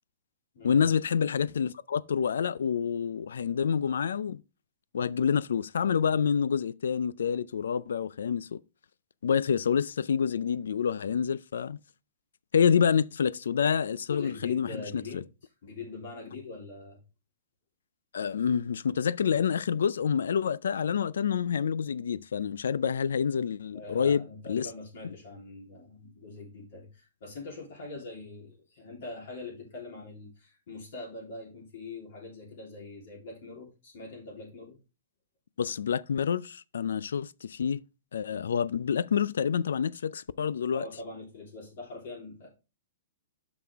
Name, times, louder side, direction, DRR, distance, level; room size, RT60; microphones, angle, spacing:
voice 1, 0.6-4.4 4.9-8.6 9.2-11.8 12.5-15.2 18.1-24.7 35.6-37.8 38.1-40.9, left 7 dB, 90° left, 0.4 m, -27 dB
voice 2, 14.1-15.3 15.6-17.0 23.7-34.8 40.7-42.5, left 3 dB, 50° left, 3.3 m, -43 dB
7.3 x 6.1 x 3.5 m
hypercardioid pair, 170°, 0 cm